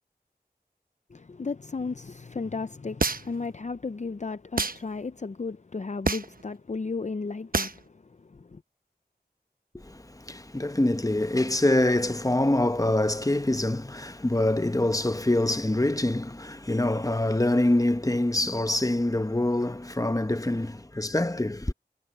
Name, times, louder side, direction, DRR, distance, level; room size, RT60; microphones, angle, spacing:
voice 1, 1.1-8.6, left 4 dB, 45° left, 0.5 m, -34 dB
sound 1, 3.0-3.5 4.6-4.8 6.1-6.4 7.5-7.8, right 3 dB, 55° right, 0.9 m, -27 dB
voice 2, 9.8-21.7, left 1 dB, 20° left, 0.9 m, -25 dB
wide cardioid pair, 45°, 17 cm